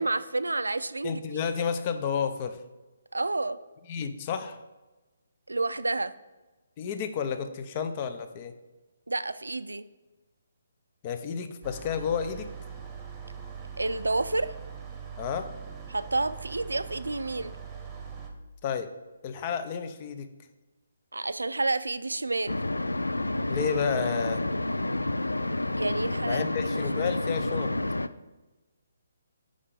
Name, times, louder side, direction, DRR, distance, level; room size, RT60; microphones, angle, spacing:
voice 1, 0.0-1.4 3.1-3.6 5.5-6.1 9.1-9.8 13.8-14.5 15.9-17.5 21.1-22.6 25.8-26.4 27.0-27.2, right 2 dB, 85° right, 14 dB, 0.4 m, -29 dB
voice 2, 1.0-2.6 3.9-4.6 6.8-8.5 11.0-12.5 15.2-15.5 18.6-18.9 19.2-20.3 23.5-24.4 26.3-27.7, left 7 dB, 35° left, 9 dB, 0.6 m, -31 dB
sound 1, 11.6-18.3, right 7 dB, 15° right, 1.0 m, -42 dB
sound 2, 22.5-28.1, left 2 dB, 90° left, 0.3 m, -29 dB
5.5 x 5.0 x 4.9 m, 1.1 s
figure-of-eight pair, 140°, 0 cm